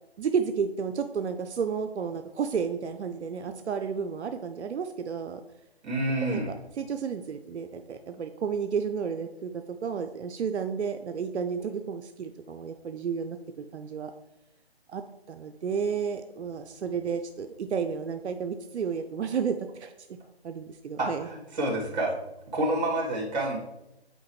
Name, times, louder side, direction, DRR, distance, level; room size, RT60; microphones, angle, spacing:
voice 1, 0.2-5.4 6.2-14.1 14.9-15.0 15.3-19.9 20.4-21.3, right 6 dB, 85° right, 7 dB, 0.5 m, -32 dB
voice 2, 5.8-6.5 21.0-22.1 22.5-23.6, right 1 dB, 40° right, -2 dB, 2.2 m, -28 dB
7.8 x 4.4 x 3.1 m, 0.92 s
figure-of-eight pair, 155°, 33 cm